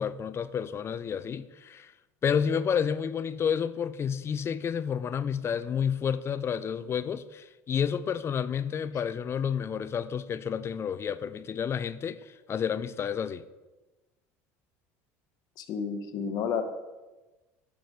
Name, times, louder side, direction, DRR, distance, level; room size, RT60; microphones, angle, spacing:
voice 1, 0.0-1.9 2.2-13.4, left 7 dB, 30° left, 0.3 m, -30 dB
voice 2, 15.6-16.6, left 7 dB, 55° left, 0.7 m, -31 dB
5.9 x 4.2 x 4.7 m
hypercardioid pair, 80°, 8 cm